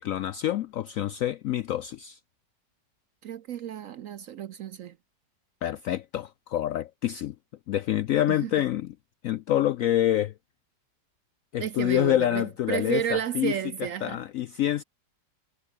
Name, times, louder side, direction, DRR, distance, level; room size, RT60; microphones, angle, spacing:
voice 1, 0.0-2.2 5.6-7.3 7.7-8.9 9.2-10.3 11.5-13.5 14.0-14.8, left 12 dB, 75° left, 0.7 m, -27 dB
voice 2, 3.2-5.0 8.4-8.5 11.6-14.2, right 9 dB, 65° right, 0.8 m, -32 dB
omnidirectional pair, 1.9 m